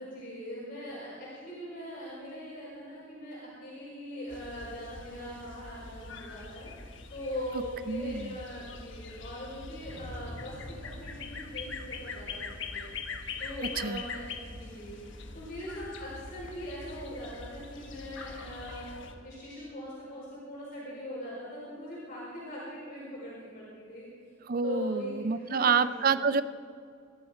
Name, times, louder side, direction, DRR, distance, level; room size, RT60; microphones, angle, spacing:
voice 1, 0.0-6.7 7.1-12.9 13.4-15.0 15.3-24.1 24.6-26.1, left 1 dB, 40° left, -8 dB, 5.0 m, -41 dB
sound 1, 4.3-19.1, left 4 dB, 60° left, 1.3 m, -43 dB
voice 2, 7.9-8.4 13.8-14.0 24.5-26.4, right 5 dB, 45° right, 14 dB, 0.4 m, -28 dB
sound 2, 9.4-14.3, equal, 75° left, 1.9 m, -50 dB
21.5 x 12.5 x 4.6 m, 2.3 s
head